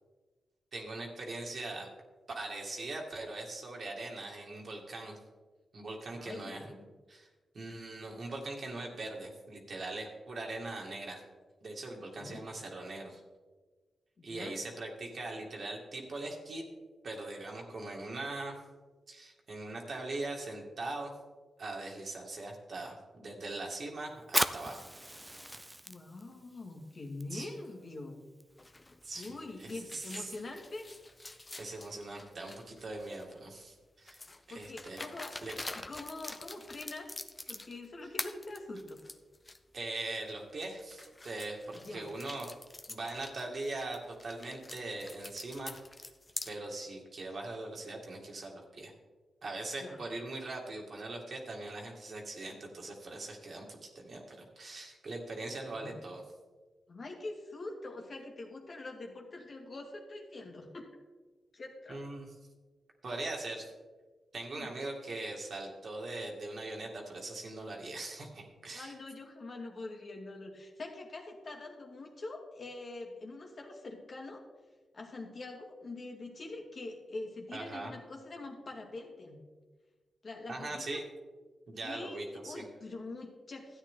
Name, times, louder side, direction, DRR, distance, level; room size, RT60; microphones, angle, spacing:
voice 1, 0.7-1.9 2.3-5.2 5.7-6.8 7.1-7.3 7.5-11.2 11.6-13.2 14.2-16.6 17.0-18.6 19.1-21.1 21.6-24.9 27.3-27.5 29.0-30.3 31.6-34.2 34.5-35.0 35.4-35.5 39.7-42.5 42.9-46.1 46.5-48.9 49.4-56.2 61.9-62.3 63.0-63.7 64.3-68.9 77.5-77.9 80.5-81.0 81.7-82.6, right 2 dB, 60° right, 0 dB, 2.3 m, -41 dB
voice 2, 6.1-6.6 12.2-12.5 14.2-14.6 25.9-28.2 29.2-30.8 34.5-35.3 35.7-37.1 37.5-39.0 41.7-42.1 49.8-50.0 55.7-55.9 56.9-60.9 61.5-62.0 64.6-64.7 68.7-74.4 74.9-79.4 80.2-81.0 81.8-83.8, left 2 dB, 55° left, 2 dB, 2.1 m, -44 dB
Fire, 24.2-31.4, right 1 dB, 10° right, 0.6 m, -40 dB
sound 1, 28.6-33.4 34.1-37.9 38.2-39.6 40.0-40.1 40.6-46.5, left 2 dB, 25° left, 0.8 m, -46 dB
13.0 x 9.0 x 3.8 m, 1.3 s
cardioid pair, 65°, 0 cm